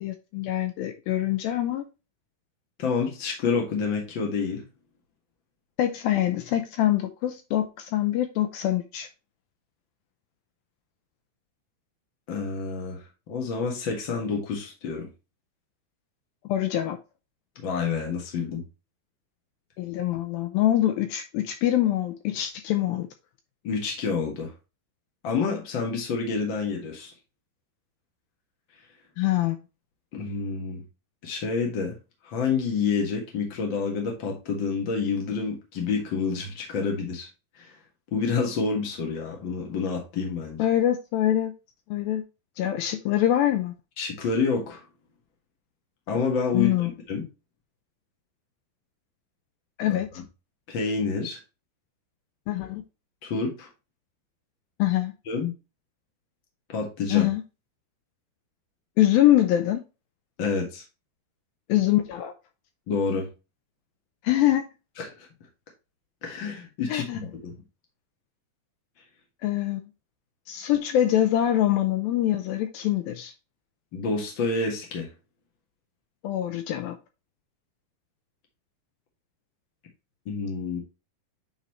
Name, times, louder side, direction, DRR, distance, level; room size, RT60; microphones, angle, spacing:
voice 1, 0.0-1.8 5.8-9.1 16.5-17.0 19.8-23.1 29.2-29.6 40.6-41.5 41.9-42.2 42.6-43.7 46.5-46.9 49.8-50.1 52.5-52.8 54.8-55.1 57.1-57.4 59.0-59.8 61.7-62.3 64.2-64.6 66.9-67.2 69.4-69.9 70.5-73.3 76.2-77.0, left 12 dB, 80° left, 2.1 m, -24 dB
voice 2, 2.8-4.6 12.3-15.1 17.6-18.6 23.6-24.5 25.2-27.1 30.1-30.8 31.2-32.0 32.2-37.3 37.5-37.7 38.1-40.6 44.0-44.8 46.1-47.2 49.9-50.2 50.7-51.4 53.2-53.7 55.3-55.5 56.7-57.3 60.4-60.8 62.9-63.3 65.0-65.3 66.2-67.5 73.9-75.1 80.2-80.8, left 5 dB, 65° left, 1.1 m, -28 dB
9.0 x 4.1 x 3.0 m
omnidirectional pair, 4.8 m